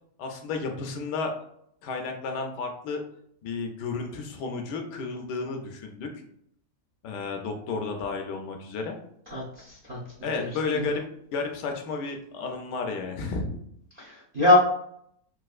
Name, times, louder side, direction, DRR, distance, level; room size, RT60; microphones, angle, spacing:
voice 1, 0.2-1.5 1.8-3.0 3.4-6.1 7.0-9.0 10.2-11.0 11.3-13.5, left 4 dB, 75° left, 3 dB, 1.1 m, -32 dB
voice 2, 9.3-10.0 10.4-10.5 10.7-10.8 14.0-14.6, left 2 dB, 70° right, -5 dB, 0.5 m, -24 dB
4.0 x 2.4 x 2.3 m, 0.69 s
omnidirectional pair, 1.9 m